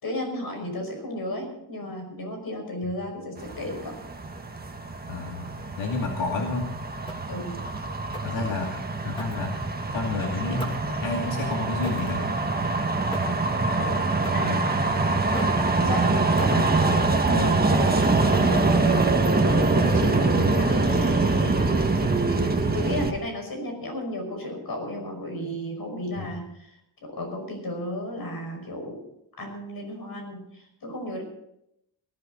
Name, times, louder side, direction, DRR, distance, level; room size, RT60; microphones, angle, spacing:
voice 1, 0.0-4.0 7.3-7.6 8.2-8.5 13.7-13.9 14.3-14.9 15.3-18.7 19.4-21.7 22.7-26.7 27.0-29.0 29.4-31.2, left 1 dB, 50° left, 3 dB, 5.7 m, -33 dB
sound 1, 3.4-23.1, right 3 dB, 20° right, 1.6 m, -24 dB
voice 2, 5.1-6.7 8.2-8.7 9.0-9.6 9.9-10.7 11.0-12.3 26.2-26.3, left 3 dB, 80° left, 0 dB, 2.6 m, -30 dB
sound 2, 7.1-7.4 8.1-8.4 9.1-9.9 10.6-11.0 11.8-12.2 13.1-13.5 14.2-14.6 15.3-15.7 16.4-16.8, equal, 10° left, 2.6 m, -39 dB
19.5 x 14.5 x 4.0 m, 0.79 s
wide cardioid pair, 130°, 45 cm